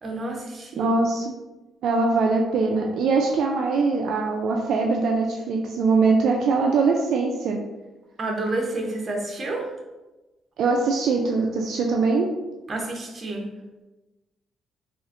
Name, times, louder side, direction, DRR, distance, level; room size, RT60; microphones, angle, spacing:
voice 1, 0.0-0.9 8.2-9.7 12.7-13.5, right 2 dB, 40° right, 1 dB, 0.8 m, -29 dB
voice 2, 0.8-1.3 1.8-7.6 10.6-12.3, right 4 dB, 75° right, 0 dB, 0.3 m, -22 dB
4.0 x 2.4 x 2.5 m, 1.1 s
cardioid pair, 90°, 0 cm